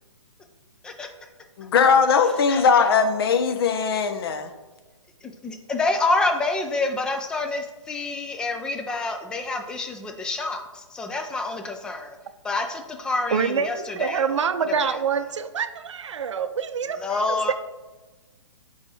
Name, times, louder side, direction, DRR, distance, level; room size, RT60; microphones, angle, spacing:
voice 1, 1.6-4.5, left 5 dB, 50° left, 9 dB, 0.6 m, -20 dB
voice 2, 5.2-12.2 12.4-14.4 14.8-15.0 17.0-17.5, left 3 dB, 5° left, 5 dB, 0.3 m, -27 dB
voice 3, 13.3-17.5, right 6 dB, 70° right, 11 dB, 0.5 m, -26 dB
7.2 x 4.7 x 2.7 m, 1.2 s
hypercardioid pair, 135°, 16 cm